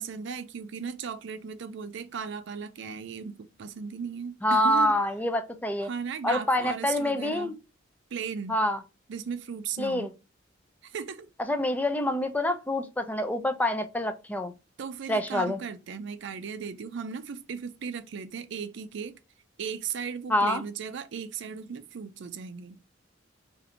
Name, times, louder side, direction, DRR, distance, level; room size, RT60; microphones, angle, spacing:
voice 1, 0.0-5.0 5.8-7.5 8.1-8.6 9.1-10.1 10.8-11.3 14.8-19.2 19.6-22.8, right 6 dB, 65° right, 0.4 m, -36 dB
voice 2, 4.4-5.9 6.2-7.5 8.5-8.8 9.8-10.1 11.5-14.5 15.1-15.6 20.3-20.6, left 1 dB, 10° left, 0.4 m, -26 dB
2.6 x 2.5 x 4.2 m
head